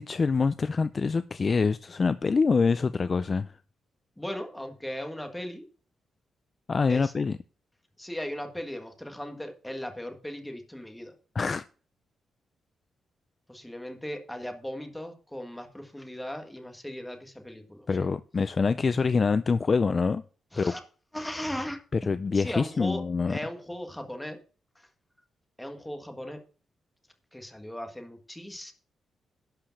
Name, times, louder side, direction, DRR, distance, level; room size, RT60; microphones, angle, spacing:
voice 1, 0.0-3.5 6.7-7.4 11.4-11.6 17.9-20.2 20.6-20.7 22.1-23.4, left 4 dB, 30° left, 0.4 m, -25 dB
voice 2, 4.2-5.6 6.9-7.1 8.0-11.1 13.5-18.1 20.5-20.8 21.1-24.4 24.7-24.9 25.6-26.4 27.3-28.7, left 1 dB, 5° left, 1.7 m, -38 dB
11.5 x 5.0 x 7.2 m
wide cardioid pair, 175°, 0 cm